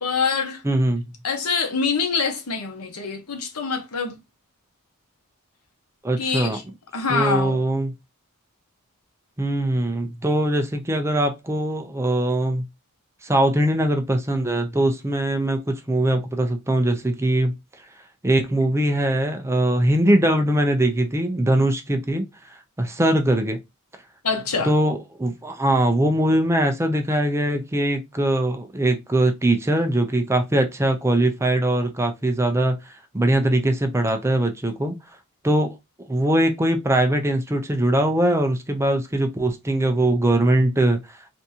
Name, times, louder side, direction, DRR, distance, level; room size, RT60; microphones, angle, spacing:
voice 1, 0.0-0.6 1.2-4.2 6.2-6.6 6.9-7.6 24.2-24.7, left 5 dB, 85° left, 0.9 m, -25 dB
voice 2, 0.6-1.1 6.0-6.6 7.1-7.9 9.4-12.6 13.2-17.5 18.2-22.3 22.8-23.6 24.6-34.9 35.4-35.7 36.1-41.2, right 1 dB, 10° right, 0.4 m, -21 dB
3.5 x 2.7 x 2.7 m
head